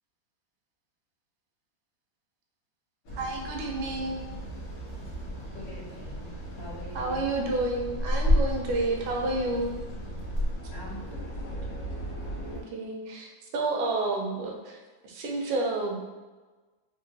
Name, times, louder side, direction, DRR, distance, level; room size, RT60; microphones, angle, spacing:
sound 1, 3.0-12.6, equal, 55° left, 1.1 m, -32 dB
voice 1, 3.1-4.2 6.9-9.7 12.7-14.8 15.0-16.1, right 2 dB, 90° right, 0 dB, 1.4 m, -30 dB
voice 2, 5.5-6.3 6.6-7.3 10.7-11.3, equal, 70° left, -10 dB, 1.7 m, -44 dB
3.8 x 2.1 x 2.6 m, 1.3 s
omnidirectional pair, 2.1 m